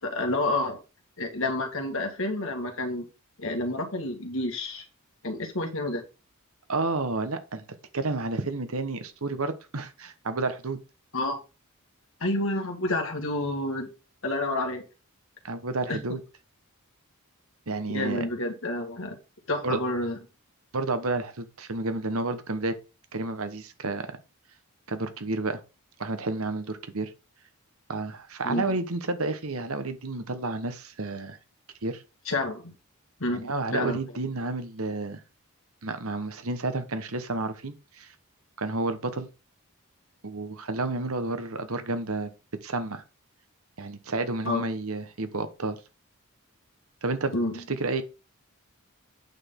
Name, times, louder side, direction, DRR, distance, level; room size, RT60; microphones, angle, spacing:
voice 1, 0.0-0.8 1.2-3.1 3.4-4.8 5.2-6.0 11.1-11.4 12.2-13.9 14.2-14.8 15.9-16.0 17.9-19.2 19.5-20.2 28.4-28.6 32.2-32.7 33.2-34.0 44.4-44.6 47.3-47.6, left 2 dB, 60° left, 1.8 m, -29 dB
voice 2, 6.7-7.6 7.9-10.8 15.4-16.2 17.7-18.2 19.6-19.8 20.7-22.8 23.1-24.2 24.9-25.6 26.0-27.1 27.9-31.4 31.8-32.0 33.4-35.2 35.8-38.1 38.6-39.3 40.2-42.3 42.6-43.0 43.8-45.8 47.0-47.3 47.7-48.0, right 3 dB, 75° right, 1.2 m, -30 dB
8.7 x 6.3 x 3.8 m
head